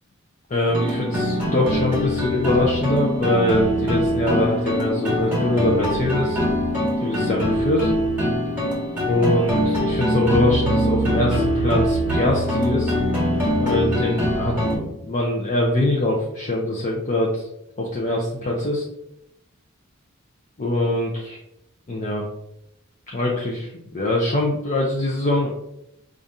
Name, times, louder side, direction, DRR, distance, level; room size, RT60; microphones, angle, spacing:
voice 1, 0.5-6.4 7.0-7.9 9.1-12.9 13.6-17.5 17.8-18.9 20.6-21.4 21.9-22.3 23.1-25.6, left 1 dB, 35° left, -2 dB, 0.5 m, -23 dB
sound 1, 0.7-14.8, equal, 10° right, 1.4 m, -23 dB
4.8 x 2.5 x 2.7 m, 0.80 s
head